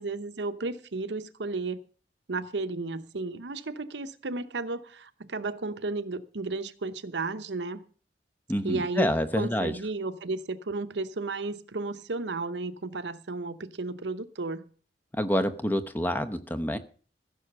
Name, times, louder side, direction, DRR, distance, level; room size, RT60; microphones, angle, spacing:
voice 1, 0.0-1.8 2.3-7.8 8.6-14.7, right 3 dB, 90° right, 0.9 m, -33 dB
voice 2, 8.5-9.7 15.1-16.8, equal, 10° left, 0.8 m, -27 dB
15.0 x 6.3 x 6.7 m
head